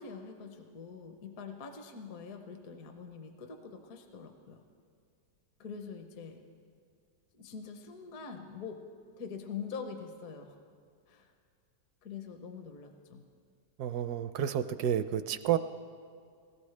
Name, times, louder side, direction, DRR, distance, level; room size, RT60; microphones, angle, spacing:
voice 1, 0.0-4.6 5.6-6.4 7.3-8.9 9.2-10.6 11.1-11.3 12.0-13.3, left 5 dB, 65° left, 5 dB, 1.2 m, -44 dB
voice 2, 13.8-15.6, right 10 dB, 75° right, 12 dB, 1.1 m, -30 dB
20.5 x 18.5 x 3.3 m, 2.2 s
omnidirectional pair, 1.8 m